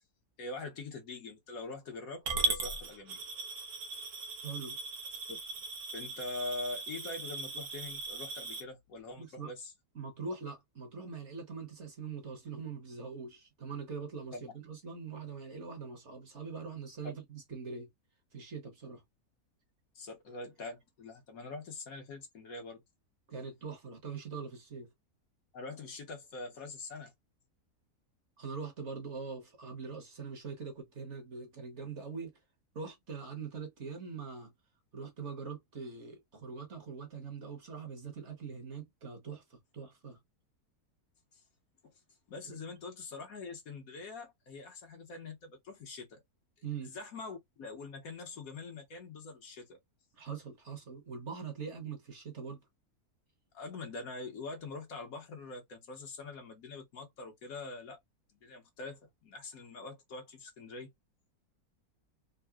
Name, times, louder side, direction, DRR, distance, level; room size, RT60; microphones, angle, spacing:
voice 1, 0.4-3.2 5.3-5.4 5.9-9.7 14.3-14.5 17.0-17.1 19.9-22.8 25.5-27.1 42.3-46.2 46.8-49.8 53.5-58.0 58.3-60.9, left 3 dB, 65° left, 1.3 m, -44 dB
Coin (dropping) / Glass, 2.3-8.6, right 3 dB, 85° right, 1.4 m, -38 dB
voice 2, 4.4-4.8 9.2-9.5 9.9-17.9 18.3-19.0 23.3-24.9 28.4-32.3 32.7-34.5 34.9-40.2 42.4-42.6 46.6-47.0 50.1-52.6, right 5 dB, 50° right, 1.2 m, -43 dB
3.7 x 2.0 x 2.2 m
omnidirectional pair, 1.6 m